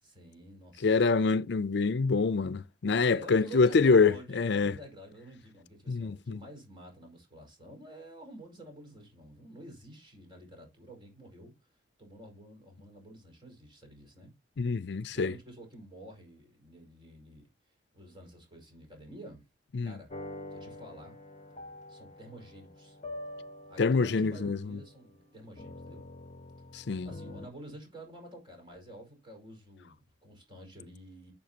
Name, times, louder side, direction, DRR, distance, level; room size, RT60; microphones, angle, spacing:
voice 1, 0.0-0.9 3.1-11.5 12.0-14.3 15.1-17.5 17.9-19.4 19.8-20.2 20.5-21.2 21.9-23.0 23.7-26.1 27.0-31.3, right 1 dB, 25° right, 5.2 m, -49 dB
voice 2, 0.8-4.7 5.9-6.4 14.6-15.3 19.7-19.9 23.8-24.8 26.7-27.1, left 4 dB, 65° left, 0.5 m, -26 dB
sound 1, 20.1-27.5, left 2 dB, 40° left, 1.0 m, -46 dB
12.5 x 7.1 x 2.9 m
head